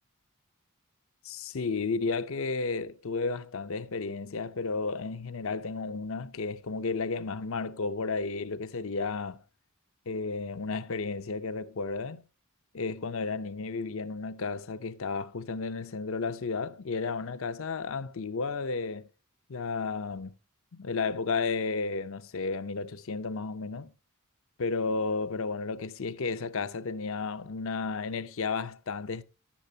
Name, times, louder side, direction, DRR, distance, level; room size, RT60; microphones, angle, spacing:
voice 1, 1.2-9.4 10.1-12.2 12.7-19.1 19.5-20.3 20.7-23.9 24.6-29.2, left 4 dB, 65° left, 0.6 m, -33 dB
11.0 x 10.0 x 2.7 m
head